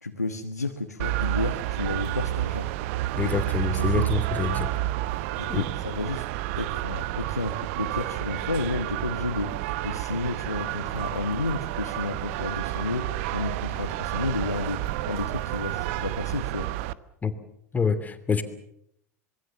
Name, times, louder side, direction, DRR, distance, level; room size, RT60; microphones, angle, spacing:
voice 1, 0.0-2.7 3.2-3.3 3.7-4.1 4.5-4.6 5.4-6.2 6.5-16.7, left 3 dB, 90° left, 4 dB, 1.4 m, -32 dB
sound 1, 1.0-16.9, right 16 dB, 55° right, 1.0 m, -30 dB
voice 2, 3.1-4.7 5.5-5.7 17.2-17.3 17.7-18.4, left 6 dB, 20° left, 10 dB, 2.9 m, -26 dB
26.0 x 22.5 x 7.2 m, 0.75 s
figure-of-eight pair, 80°, 8 cm